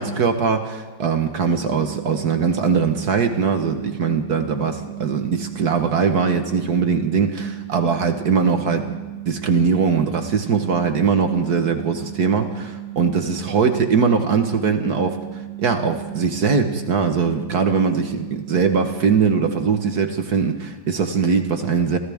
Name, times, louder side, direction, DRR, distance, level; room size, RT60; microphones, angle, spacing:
voice 1, 0.0-9.0 9.3-22.0, right 5 dB, 55° right, 6 dB, 1.7 m, -21 dB
sound 1, 1.5-20.1, right 15 dB, 90° right, 1.6 m, -35 dB
29.0 x 26.0 x 3.6 m, 1.3 s
omnidirectional pair, 2.1 m